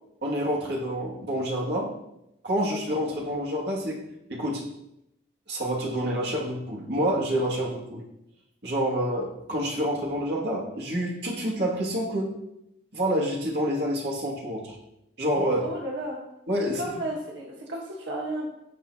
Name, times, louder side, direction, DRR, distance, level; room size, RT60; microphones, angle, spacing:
voice 1, 0.2-2.0 2.4-4.0 4.3-4.6 5.5-8.0 8.6-12.3 12.9-14.8 15.2-15.7 16.5-16.8, equal, 60° right, -3 dB, 2.4 m, -28 dB
voice 2, 15.6-16.2 16.8-18.5, right 1 dB, 80° right, -3 dB, 1.5 m, -33 dB
17.0 x 5.7 x 2.9 m, 0.83 s
head